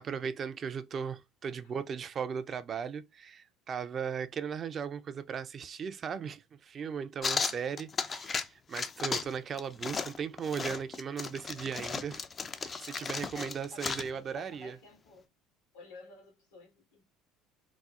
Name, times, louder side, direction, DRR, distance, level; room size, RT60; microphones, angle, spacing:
voice 1, 0.0-12.2 12.6-14.7, right 7 dB, 40° right, 0.4 m, -37 dB
sound 1, 7.2-8.5 8.7-9.3 9.6-14.1, left 5 dB, 35° left, 0.4 m, -35 dB
voice 2, 7.5-7.8 13.3-15.3 15.7-17.0, left 2 dB, 90° left, 1.7 m, -52 dB
4.1 x 2.0 x 2.3 m
hypercardioid pair, 80°, 0 cm